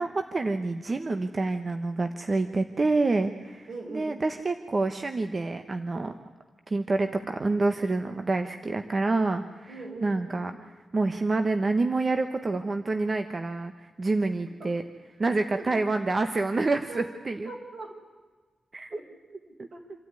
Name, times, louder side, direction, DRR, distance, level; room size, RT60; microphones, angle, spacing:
voice 1, 0.0-6.2 6.7-9.7 10.0-10.5 10.9-14.8 15.2-17.5 18.7-19.0 19.6-19.7, right 3 dB, 35° right, 7 dB, 1.1 m, -27 dB
voice 2, 3.7-4.1 9.7-10.6 14.6-14.7 15.6-15.7 16.9-17.1 17.4-17.9 18.9-19.8, right 3 dB, 70° right, 1 dB, 5.9 m, -41 dB
27.0 x 13.0 x 9.8 m, 1.4 s
wide cardioid pair, 110°, 0 cm